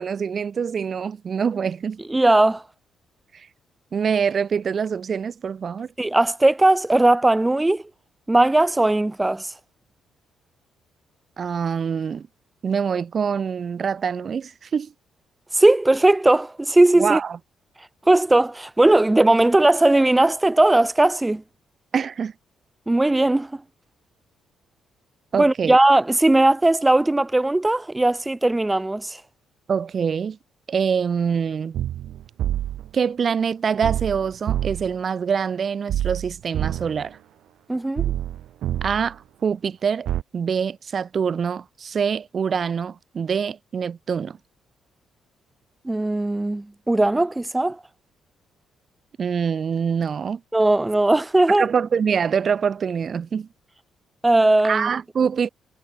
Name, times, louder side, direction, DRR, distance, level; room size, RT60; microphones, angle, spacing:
voice 1, 0.0-2.0 3.3-3.5 3.9-5.9 11.4-12.3 12.6-14.9 17.0-17.4 21.9-22.3 25.3-25.8 29.7-30.4 30.7-31.8 32.9-37.2 38.8-40.1 40.3-44.4 49.2-50.4 51.6-53.5 54.6-55.5, right 6 dB, 45° right, 2.4 m, -25 dB
voice 2, 2.1-2.6 6.0-7.8 8.3-9.5 15.5-17.2 18.1-21.4 22.9-23.5 25.3-29.2 37.7-38.1 45.8-47.8 50.5-51.7 54.2-54.9, right 2 dB, 15° right, 3.1 m, -18 dB
sound 1, 31.7-32.9 33.8-35.0 35.9-37.1 38.0-39.1 40.1-40.2, right 12 dB, 75° right, 6.7 m, -27 dB
cardioid pair, 90°, 0 cm